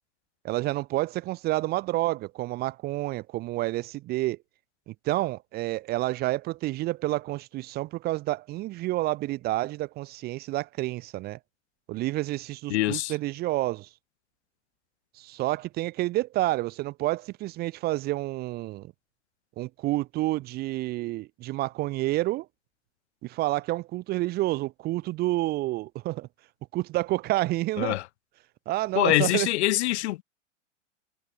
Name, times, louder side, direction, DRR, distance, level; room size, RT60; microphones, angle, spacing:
voice 1, 0.4-4.4 4.9-11.4 11.9-13.9 15.2-18.9 19.6-22.5 23.2-26.3 26.7-28.0 28.7-29.5, right 17 dB, 25° right, 0.5 m, -29 dB
voice 2, 12.7-13.1 27.8-28.0 29.0-30.2, left 16 dB, 60° left, 0.7 m, -24 dB
hypercardioid pair, 105°, 37 cm